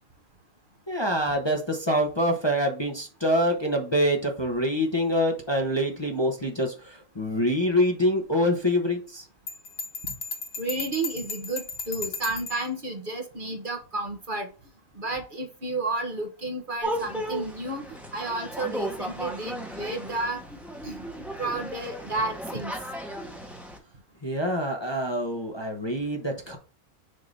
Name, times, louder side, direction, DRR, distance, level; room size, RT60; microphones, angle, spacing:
voice 1, 0.9-9.2 24.2-26.6, equal, 20° left, 1 dB, 1.0 m, -25 dB
Bell, 9.5-12.7, left 4 dB, 50° left, 1.2 m, -35 dB
voice 2, 10.6-14.5 15.0-17.8 18.1-20.4 20.8-21.0 21.4-22.7, right 2 dB, 45° right, 4 dB, 1.2 m, -31 dB
sound 1, 16.8-23.8, right 1 dB, ahead, 1.1 m, -35 dB
6.7 x 2.8 x 5.2 m, 0.35 s
omnidirectional pair, 1.3 m